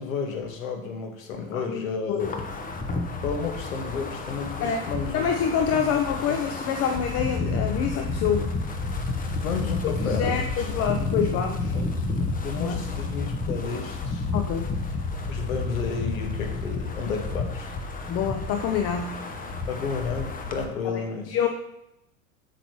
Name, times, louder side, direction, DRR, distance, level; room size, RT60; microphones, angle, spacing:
voice 1, 0.0-2.3 3.2-5.3 6.3-6.4 9.4-10.6 11.0-11.3 11.7-11.9 12.4-14.3 15.2-17.7 19.7-21.4, left 5 dB, 70° left, 3 dB, 1.6 m, -32 dB
Wind, 2.2-20.7, left 3 dB, 20° left, 1.0 m, -30 dB
voice 2, 5.1-8.5 10.1-11.7 12.6-12.9 14.3-14.8 18.1-19.3 20.9-21.0 21.3-21.5, left 7 dB, 35° left, 5 dB, 0.7 m, -26 dB
7.9 x 7.1 x 3.1 m, 0.88 s
figure-of-eight pair, 85°, 42 cm